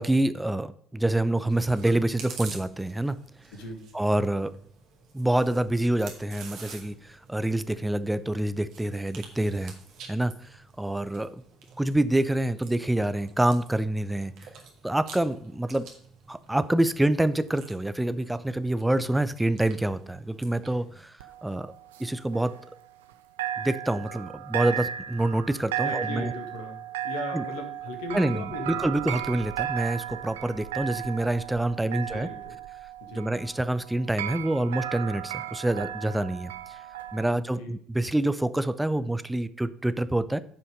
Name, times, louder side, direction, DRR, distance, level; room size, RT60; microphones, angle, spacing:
voice 1, 0.0-3.2 3.9-4.5 5.1-9.7 10.1-10.3 10.8-11.4 11.8-14.3 14.8-15.9 16.3-21.1 21.4-21.7 22.0-22.6 23.6-26.3 27.3-27.4 28.1-32.3 33.1-36.5 37.1-40.4, right 1 dB, 5° right, 13 dB, 0.7 m, -26 dB
Chewing mastication, 1.5-21.0, right 5 dB, 55° right, 2.2 m, -49 dB
voice 2, 3.5-3.8 25.8-29.0 31.8-32.6 33.0-33.3 37.3-37.7, left 2 dB, 65° left, 4 dB, 1.9 m, -38 dB
sound 1, 21.2-23.1 23.4-37.3, right 11 dB, 75° right, 0.6 m, -35 dB
9.9 x 5.6 x 5.2 m, 0.63 s
figure-of-eight pair, 55°, 0 cm